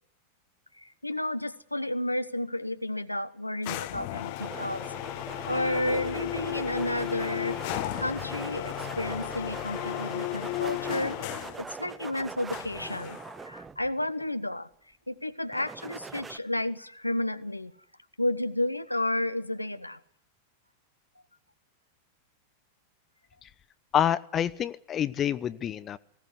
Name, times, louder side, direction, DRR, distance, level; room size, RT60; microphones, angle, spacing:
voice 1, 0.8-4.8 5.5-7.6 7.9-13.2 13.4-14.7 15.1-17.7 18.2-20.0, left 1 dB, 85° left, 11 dB, 1.1 m, -32 dB
sound 1, 3.6-11.7 12.5-13.4, left 16 dB, 50° left, 1.2 m, -35 dB
sound 2, 4.4-14.2 15.5-16.4, right 4 dB, 15° right, 1.0 m, -42 dB
voice 2, 23.9-26.0, left 9 dB, 25° left, 15 dB, 0.8 m, -27 dB
19.5 x 17.0 x 9.7 m, 0.68 s
figure-of-eight pair, 90°, 0 cm